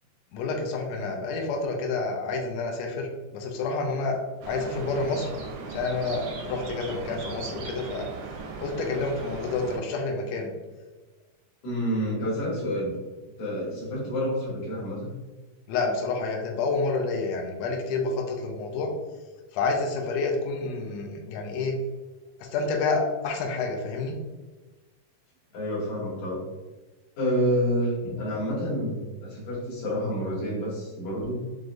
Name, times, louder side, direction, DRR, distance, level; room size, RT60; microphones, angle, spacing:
voice 1, 0.3-4.2 4.4-5.3 5.7-8.1 8.6-10.5 15.7-18.9 19.5-21.8 22.4-24.2, left 3 dB, 85° left, 1 dB, 1.5 m, -29 dB
sound 1, 4.4-9.8, right 4 dB, 90° right, 2.4 m, -38 dB
voice 2, 11.6-13.0 13.4-15.1 25.5-26.5 27.2-31.4, equal, 70° left, -5 dB, 2.6 m, -28 dB
6.1 x 2.4 x 2.5 m, 1.2 s
omnidirectional pair, 3.7 m